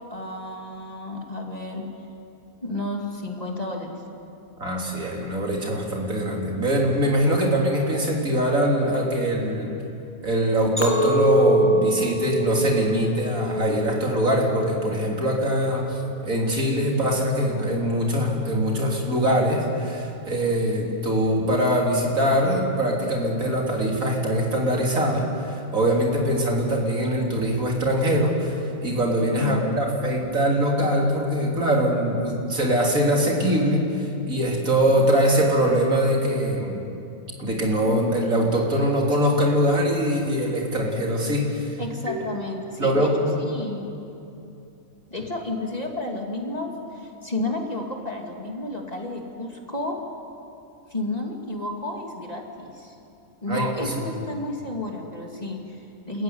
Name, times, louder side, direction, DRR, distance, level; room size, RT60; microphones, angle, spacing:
voice 1, 0.1-1.9 2.6-4.0 29.4-29.8 41.8-43.1 43.4-43.9 45.1-50.0 50.9-52.9 53.4-56.2, left 2 dB, 30° left, 1 dB, 2.5 m, -31 dB
voice 2, 4.6-9.7 10.2-16.0 16.2-36.8 37.4-41.8 42.1-42.2 42.8-43.3 53.5-53.9, equal, 75° right, -1 dB, 3.8 m, -23 dB
Chink clink, 10.8-15.1 15.6-16.0, right 1 dB, 10° left, 2.1 m, -24 dB
30.0 x 14.0 x 9.4 m, 2.7 s
omnidirectional pair, 1.5 m